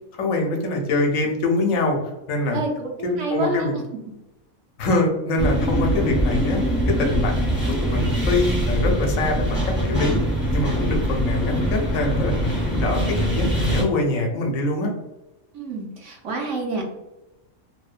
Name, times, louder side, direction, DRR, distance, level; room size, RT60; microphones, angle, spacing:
voice 1, 0.1-2.6 3.0-3.7 4.8-7.5 7.8-10.2 10.5-14.9, left 2 dB, 75° left, 1 dB, 1.0 m, -24 dB
voice 2, 2.5-3.8 15.5-16.8, right 3 dB, 65° right, 0 dB, 0.9 m, -28 dB
sound 1, 5.4-13.8, equal, 15° right, 0.5 m, -23 dB
2.7 x 2.1 x 2.3 m, 0.99 s
omnidirectional pair, 1.4 m